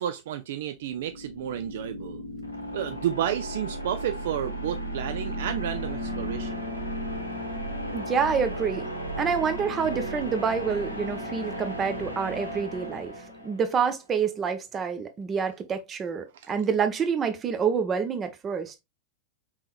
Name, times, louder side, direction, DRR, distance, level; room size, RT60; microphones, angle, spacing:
voice 1, 0.0-2.2 2.7-6.6 16.3-16.5, right 10 dB, 55° right, 0.3 m, -31 dB
sound 1, 0.8-13.8, equal, 85° left, 0.9 m, -35 dB
voice 2, 7.9-13.1 13.4-18.8, right 6 dB, 25° right, 0.7 m, -27 dB
4.3 x 3.7 x 2.3 m
figure-of-eight pair, 90°, 0 cm